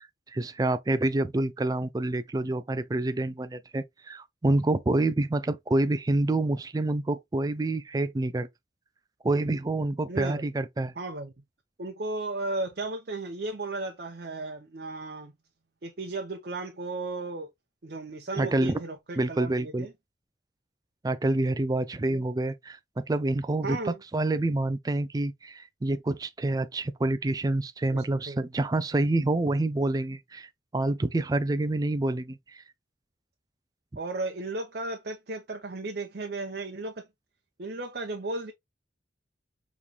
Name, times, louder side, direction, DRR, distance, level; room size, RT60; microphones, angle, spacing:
voice 1, 0.0-8.5 9.2-10.9 18.4-18.8 19.2-19.9 21.0-32.6, right 2 dB, 20° right, 0.3 m, -27 dB
voice 2, 10.1-10.5 11.0-11.3 11.8-15.3 15.8-17.5 17.8-19.9 22.1-22.2 23.6-24.0 27.9-28.4 34.0-37.1 37.6-38.5, right 2 dB, 55° right, 0.6 m, -35 dB
5.2 x 3.1 x 2.3 m
head